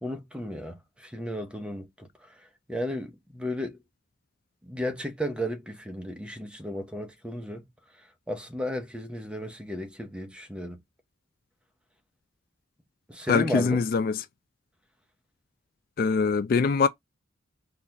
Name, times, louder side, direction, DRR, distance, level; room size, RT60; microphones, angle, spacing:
voice 1, 0.0-2.1 2.7-3.8 4.6-7.7 8.3-10.8 13.1-13.8, equal, 5° right, 0.7 m, -34 dB
voice 2, 13.3-14.2 16.0-16.9, left 5 dB, 50° left, 0.3 m, -23 dB
3.9 x 2.4 x 2.8 m
head